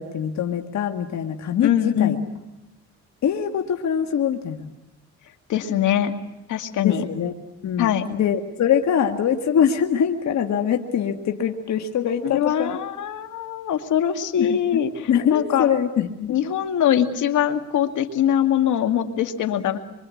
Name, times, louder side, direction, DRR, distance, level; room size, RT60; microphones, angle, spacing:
voice 1, 0.0-2.2 3.2-4.7 6.8-7.3 7.6-12.8 14.4-14.8 15.1-16.3, left 8 dB, 65° left, 4 dB, 1.8 m, -23 dB
voice 2, 1.6-2.2 5.5-6.1 6.5-7.0 7.8-8.1 12.3-15.8 16.3-19.8, left 10 dB, 80° left, 7 dB, 2.2 m, -22 dB
25.5 x 24.5 x 8.5 m, 0.97 s
cardioid pair, 90°, 30 cm